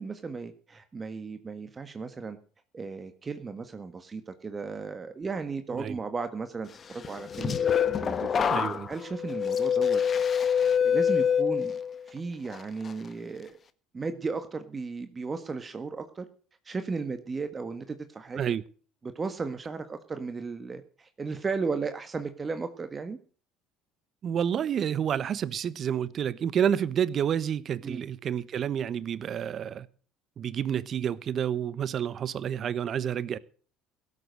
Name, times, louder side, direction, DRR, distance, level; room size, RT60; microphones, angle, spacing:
voice 1, 0.0-2.4 2.7-10.0 10.4-11.8 12.0-13.6 13.9-16.3 16.6-18.5 19.0-23.2 27.8-28.0, right 4 dB, 30° right, 1.5 m, -35 dB
sound 1, 7.0-12.1 12.5-12.9, left 7 dB, 40° left, 1.3 m, -26 dB
voice 2, 8.5-8.9 18.4-18.6 24.2-29.9 30.4-33.4, right 9 dB, 50° right, 0.9 m, -29 dB
17.0 x 8.3 x 6.4 m
hypercardioid pair, 70°, 0 cm